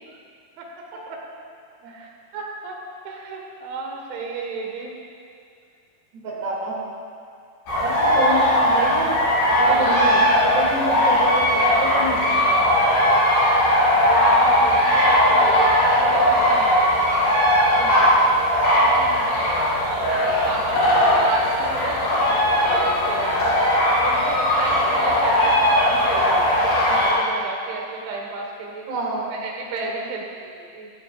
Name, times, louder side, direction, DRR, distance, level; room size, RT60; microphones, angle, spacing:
voice 1, 0.6-1.2 1.9-2.8 3.1-4.9 13.8-16.9 18.7-19.4 20.0-23.4 24.0-28.9 29.3-30.9, right 3 dB, 90° right, 0 dB, 3.8 m, -33 dB
voice 2, 6.1-6.8 7.8-9.2 9.5-12.7 17.8-18.1 21.1-21.2 28.9-29.3, right 2 dB, 65° right, -5 dB, 4.4 m, -28 dB
sound 1, 7.7-27.1, equal, 85° left, 5.9 m, -18 dB
15.5 x 15.0 x 2.4 m, 2.3 s
omnidirectional pair, 5.2 m